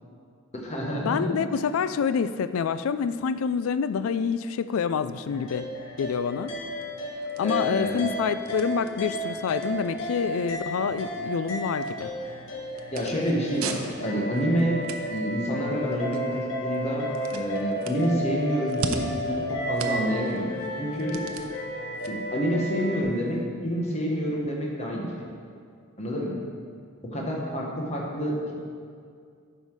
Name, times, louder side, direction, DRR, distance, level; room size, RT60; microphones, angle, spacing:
voice 1, 0.5-1.3 7.4-8.1 12.9-14.8 15.1-17.1 17.3-21.2 22.1-25.1 26.0-26.3 27.0-28.5, equal, 30° left, -2 dB, 1.3 m, -28 dB
voice 2, 1.0-5.7 6.0-6.5 7.4-12.1, left 6 dB, 80° left, 13 dB, 0.3 m, -27 dB
sound 1, 5.3-23.0, equal, 65° left, 1.2 m, -33 dB
sound 2, 6.5-23.4, right 4 dB, 85° right, 0.6 m, -42 dB
9.4 x 5.7 x 4.7 m, 2.2 s
head